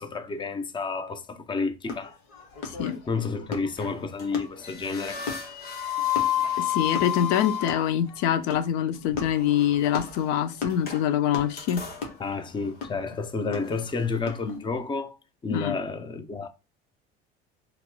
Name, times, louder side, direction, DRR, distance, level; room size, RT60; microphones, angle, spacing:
voice 1, 0.0-2.2 3.1-5.2 12.2-15.2 15.4-16.5, left 4 dB, 15° left, 0.5 m, -30 dB
sound 1, 1.8-14.6, left 4 dB, 85° left, 0.9 m, -39 dB
voice 2, 2.6-3.0 6.6-11.9 15.5-15.8, left 10 dB, 65° left, 0.4 m, -25 dB
sound 2, 3.8-4.3 4.6-8.0 9.3-10.2 10.7-11.1 11.3-12.1 12.6-12.7 13.1-13.2 13.6-14.1, left 10 dB, 30° left, 0.9 m, -30 dB
2.9 x 2.8 x 2.2 m
supercardioid pair, 85°, 30 cm